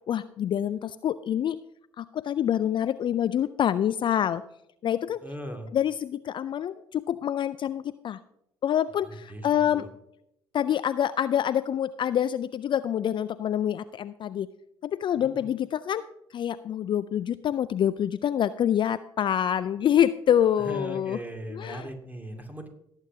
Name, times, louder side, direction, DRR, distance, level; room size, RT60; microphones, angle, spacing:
voice 1, 0.1-1.6 2.0-4.4 4.8-5.2 5.7-8.2 8.6-9.8 10.5-14.5 14.8-16.0 16.3-21.2 21.5-21.8, left 10 dB, 40° left, 15 dB, 0.4 m, -26 dB
voice 2, 5.2-5.7 9.0-9.9 15.1-15.5 20.6-22.7, equal, 15° right, 4 dB, 2.2 m, -39 dB
18.5 x 8.1 x 2.7 m, 0.78 s
hypercardioid pair, 50°, 12 cm